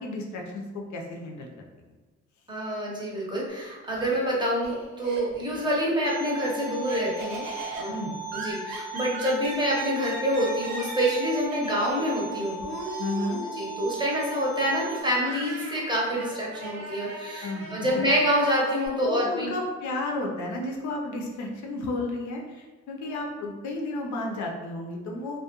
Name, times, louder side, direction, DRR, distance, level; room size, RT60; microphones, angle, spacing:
voice 1, 0.0-1.5 7.9-8.1 13.0-13.4 17.4-17.7 19.0-25.4, left 2 dB, 70° left, 0 dB, 0.5 m, -32 dB
voice 2, 2.5-7.5 7.8-7.9 8.3-12.6 13.5-19.5, equal, 15° right, -4 dB, 0.7 m, -27 dB
Laughter, 3.5-5.6 6.0-18.9, right 2 dB, 65° right, 0.7 m, -39 dB
sound 1, 6.0-15.0, right 3 dB, 25° left, 0.7 m, -37 dB
2.3 x 2.1 x 2.8 m, 1.2 s
cardioid pair, 90°, 30 cm